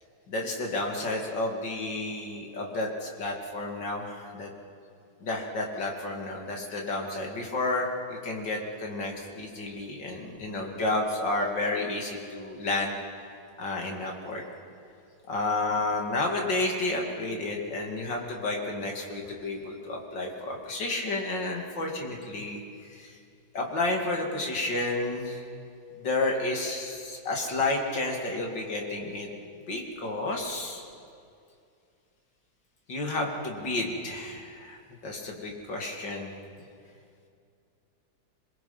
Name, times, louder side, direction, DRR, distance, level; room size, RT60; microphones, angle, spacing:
voice 1, 0.3-4.5 5.2-13.0 13.6-14.4 15.3-23.2 23.5-25.4 26.0-29.3 29.7-30.8 32.9-36.3, left 2 dB, 70° left, 0 dB, 3.2 m, -31 dB
26.5 x 21.0 x 5.7 m, 2.4 s
omnidirectional pair, 2.1 m